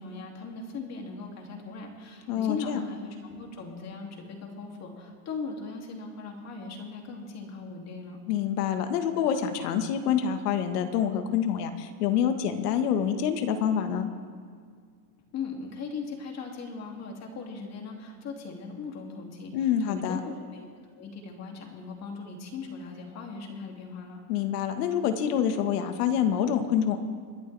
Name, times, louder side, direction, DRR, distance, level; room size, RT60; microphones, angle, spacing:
voice 1, 0.0-8.2 15.3-20.7 20.9-24.2, left 4 dB, 35° left, 1 dB, 2.7 m, -39 dB
voice 2, 2.3-2.8 8.3-14.1 19.5-20.2 24.3-27.0, left 8 dB, 75° left, 7 dB, 1.7 m, -26 dB
28.5 x 11.0 x 3.4 m, 2.1 s
supercardioid pair, 135°, 47 cm